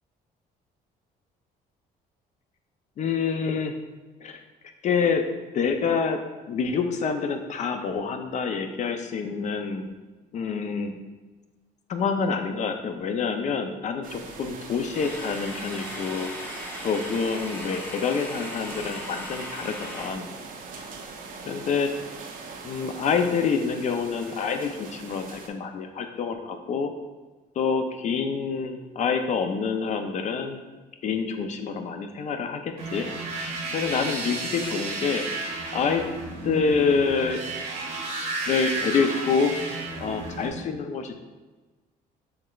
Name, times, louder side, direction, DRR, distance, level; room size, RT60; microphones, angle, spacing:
voice 1, 3.0-3.7 4.2-4.4 4.8-5.2 5.5-6.2 6.5-9.9 10.3-11.0 11.9-16.3 16.8-20.3 21.5-21.9 22.6-26.9 27.6-30.6 31.0-33.5 33.7-35.2 35.7-36.0 36.4-37.4 38.5-39.5 40.0-41.1, left 5 dB, 45° left, 6 dB, 0.4 m, -27 dB
sound 1, 14.0-25.5, right 4 dB, 55° right, 0.6 m, -41 dB
sound 2, 14.9-20.1, left 1 dB, 10° left, 0.7 m, -38 dB
sound 3, 32.8-40.5, right 3 dB, 85° right, 1.2 m, -32 dB
5.7 x 3.2 x 2.3 m, 1.3 s
cardioid pair, 110°, 17 cm